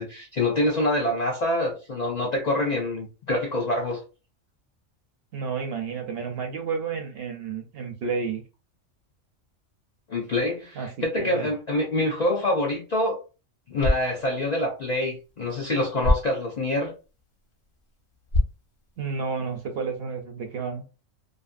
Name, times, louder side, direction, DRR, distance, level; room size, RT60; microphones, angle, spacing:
voice 1, 0.0-4.0 10.1-13.2 13.7-16.9, left 1 dB, 85° left, 0.3 m, -26 dB
voice 2, 5.3-8.4 10.8-11.5 19.0-20.8, right 5 dB, 60° right, 0.7 m, -31 dB
sound 1, 13.6-19.6, left 2 dB, 50° left, 0.8 m, -30 dB
2.6 x 2.5 x 2.4 m
omnidirectional pair, 1.4 m